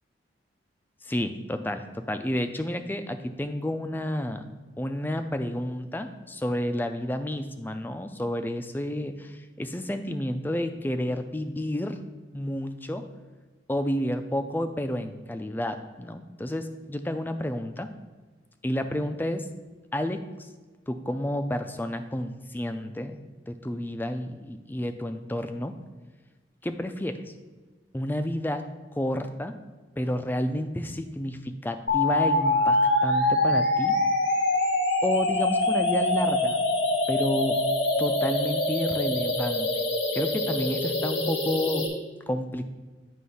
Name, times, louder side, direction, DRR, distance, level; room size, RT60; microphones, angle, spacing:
voice 1, 1.0-4.5 4.8-12.0 12.3-13.1 13.7-17.9 18.6-19.5 19.9-20.5 20.9-23.2 23.5-25.8 26.6-27.3 27.9-28.6 28.9-29.5 30.0-34.0 35.0-36.6 37.1-37.6 38.0-39.7 40.1-42.0 42.3-42.6, left 1 dB, 10° left, 8 dB, 0.3 m, -30 dB
sound 1, 31.9-41.9, left 2 dB, 85° left, 1.4 m, -24 dB
9.3 x 3.1 x 5.6 m, 1.3 s
head